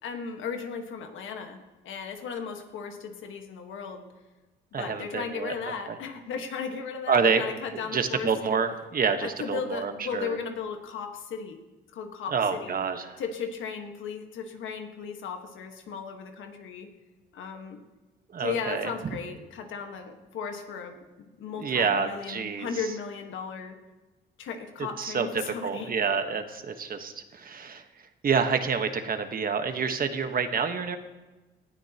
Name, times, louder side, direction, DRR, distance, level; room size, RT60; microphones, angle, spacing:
voice 1, 0.0-1.6 1.8-4.1 4.7-8.6 9.2-11.6 11.9-12.8 13.2-16.9 17.3-17.8 18.4-23.8 24.4-25.9, left 6 dB, 80° left, 5 dB, 1.5 m, -36 dB
voice 2, 4.7-5.9 7.1-7.4 7.7-10.4 12.3-13.2 18.3-18.9 21.6-22.7 24.8-27.8 28.2-31.0, right 5 dB, 45° right, 7 dB, 1.3 m, -28 dB
19.0 x 12.5 x 2.9 m, 1.2 s
cardioid pair, 90°, 20 cm